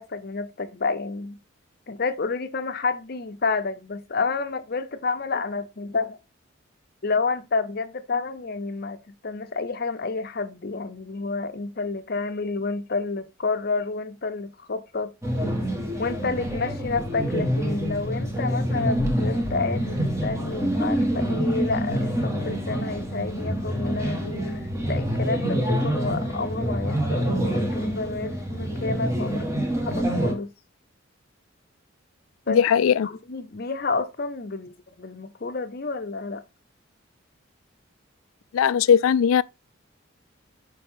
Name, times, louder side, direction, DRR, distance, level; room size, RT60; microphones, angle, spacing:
voice 1, 0.0-1.4 1.9-6.2 7.0-15.1 16.0-24.6 24.9-30.5 32.5-32.6 33.0-36.4, left 4 dB, 50° left, 0.7 m, -29 dB
sound 1, 15.2-30.3, equal, 15° right, 1.5 m, -26 dB
voice 2, 32.5-33.1 38.5-39.4, left 7 dB, 85° left, 0.3 m, -19 dB
7.0 x 4.9 x 3.6 m
head